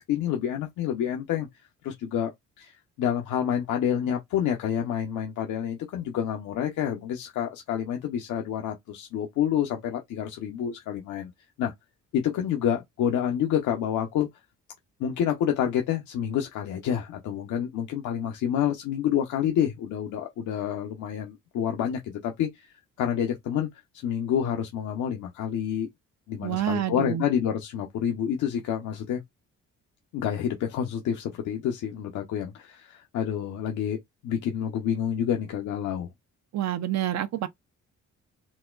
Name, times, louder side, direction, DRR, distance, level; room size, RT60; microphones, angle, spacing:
voice 1, 0.1-1.5 1.8-2.3 2.6-11.3 11.6-11.7 12.1-14.3 15.0-23.7 24.0-25.9 26.3-29.2 30.1-36.1, left 9 dB, 80° left, 0.8 m, -28 dB
voice 2, 26.4-27.2 36.5-37.5, right 12 dB, 65° right, 0.7 m, -28 dB
4.0 x 2.2 x 2.4 m
cardioid pair, 90°, 30 cm